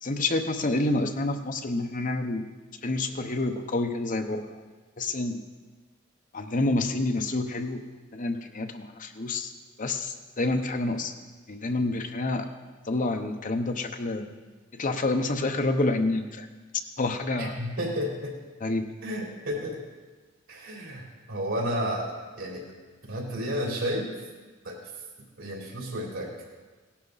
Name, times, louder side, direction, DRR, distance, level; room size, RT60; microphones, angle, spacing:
voice 1, 0.0-2.5 2.8-4.6 5.0-5.4 6.3-7.8 8.1-9.5 9.8-11.1 11.5-12.5 12.9-14.3 14.7-16.5 17.0-17.6 18.6-18.9, left 2 dB, 40° left, 6 dB, 0.9 m, -28 dB
voice 2, 17.4-18.3 19.0-19.8 20.5-22.7 23.0-24.1 24.6-24.9 25.4-26.3, equal, 90° right, -2 dB, 3.8 m, -32 dB
17.0 x 11.5 x 4.0 m, 1.3 s
head